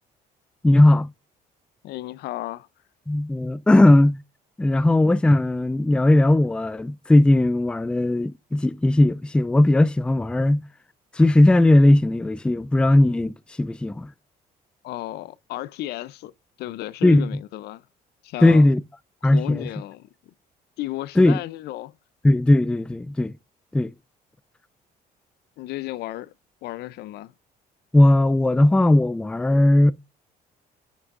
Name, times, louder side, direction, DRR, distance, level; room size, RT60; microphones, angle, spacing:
voice 1, 0.6-1.1 3.1-4.2 4.6-10.7 11.1-14.1 17.0-17.3 18.4-18.8 19.2-19.7 21.2-21.4 22.2-23.3 23.7-23.9 27.9-29.9, left 1 dB, 5° left, 0.4 m, -18 dB
voice 2, 1.8-2.7 14.8-16.3 16.6-17.9 18.2-18.7 19.2-20.1 20.8-21.9 25.6-26.3 26.6-27.3, left 15 dB, 75° left, 0.5 m, -33 dB
9.4 x 6.1 x 2.5 m
cardioid pair, 110°, 17 cm